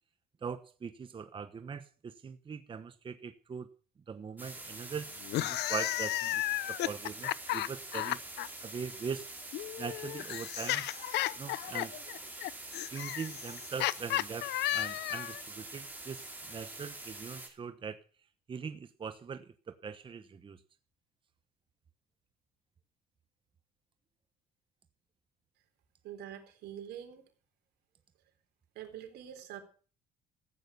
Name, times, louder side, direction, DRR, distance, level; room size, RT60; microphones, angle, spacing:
voice 1, 0.4-3.7 4.1-5.1 5.3-6.4 6.7-8.2 8.6-9.3 9.8-10.9 11.4-12.0 12.9-18.0 18.5-20.6, right 6 dB, 30° right, 10 dB, 1.0 m, -41 dB
sound 1, 4.4-17.5, right 2 dB, 10° right, 4.8 m, -46 dB
sound 2, 5.2-8.5 9.5-15.4, left 16 dB, 80° left, 0.6 m, -34 dB
voice 2, 26.0-27.2 28.8-29.6, right 10 dB, 75° right, 5 dB, 3.7 m, -45 dB
15.0 x 9.0 x 6.9 m, 0.40 s
cardioid pair, 110°, 17 cm